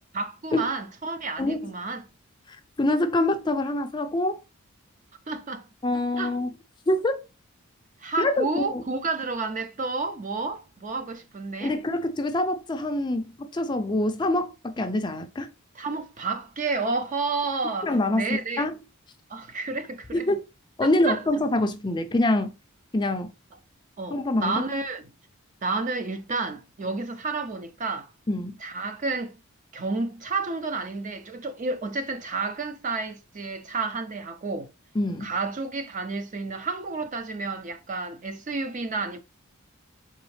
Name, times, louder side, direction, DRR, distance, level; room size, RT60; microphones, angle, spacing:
voice 1, 0.1-2.1 5.3-5.7 6.2-6.4 8.0-11.8 15.8-18.6 19.3-20.3 20.8-21.2 24.0-25.0 25.6-28.1 28.6-29.4 29.7-34.7 35.2-39.2, right 3 dB, 35° right, 0.5 m, -30 dB
voice 2, 1.4-1.7 2.8-4.4 5.8-6.5 6.9-7.2 8.2-8.8 11.6-15.5 17.8-18.7 20.1-20.4 20.8-22.5 22.9-23.3 24.1-24.6 28.3-28.6 34.9-35.3, left 1 dB, 20° left, 0.4 m, -25 dB
3.9 x 3.5 x 3.1 m
head